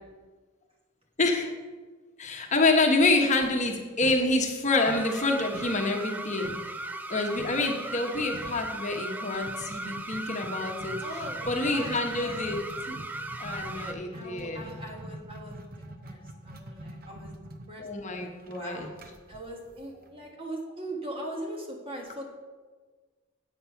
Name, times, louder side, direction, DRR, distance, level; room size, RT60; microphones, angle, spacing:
voice 1, 1.2-1.5 2.2-6.5 6.9-11.0 11.5-12.6 12.9-13.0 13.4-14.7 17.8-18.9, left 2 dB, 35° left, 2 dB, 1.1 m, -27 dB
sound 1, 3.4-4.6 4.9-6.8 7.4-7.7 8.0-8.1 8.3-8.7 9.5-20.3, right 1 dB, 45° right, 0.8 m, -44 dB
sound 2, 4.8-13.9, right 2 dB, 10° right, 0.3 m, -37 dB
voice 2, 7.9-8.2 11.0-12.4 14.1-15.6 16.0-17.3 17.7-19.0 19.3-22.3, right 1 dB, 25° right, 1 dB, 1.4 m, -40 dB
8.2 x 7.5 x 5.7 m, 1.4 s
head